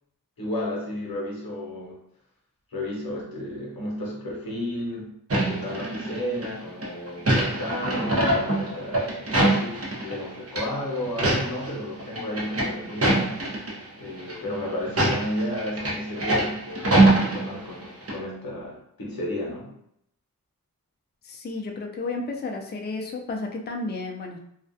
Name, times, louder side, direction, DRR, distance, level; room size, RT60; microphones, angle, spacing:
voice 1, 0.4-2.0 2.7-5.2 5.5-13.6 14.0-19.7, left 1 dB, 90° left, -3 dB, 0.8 m, -32 dB
sound 1, 5.3-6.5 6.8-10.2 10.5-10.7 11.0-11.7 12.0-13.7 14.2-14.3 14.9-17.8 18.1-18.2, right 2 dB, 45° right, 0.6 m, -23 dB
voice 2, 21.2-24.4, left 3 dB, 30° left, 1 dB, 0.4 m, -32 dB
2.3 x 2.1 x 2.6 m, 0.74 s
wide cardioid pair, 50°, 34 cm